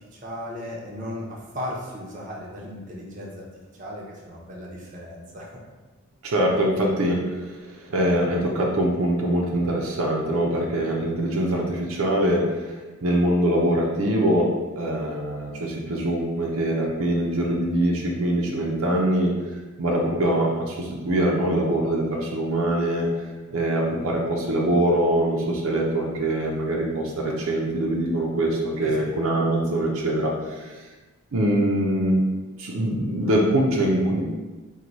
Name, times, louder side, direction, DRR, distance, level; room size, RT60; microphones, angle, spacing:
voice 1, 0.1-3.4 3.8-5.5 28.8-29.1, left 1 dB, 35° right, -3 dB, 0.7 m, -36 dB
voice 2, 6.2-14.5 14.8-19.3 19.8-23.1 23.5-30.9 31.3-32.2 32.6-34.2, right 1 dB, 70° right, -1 dB, 0.6 m, -23 dB
4.5 x 2.3 x 4.0 m, 1.3 s
head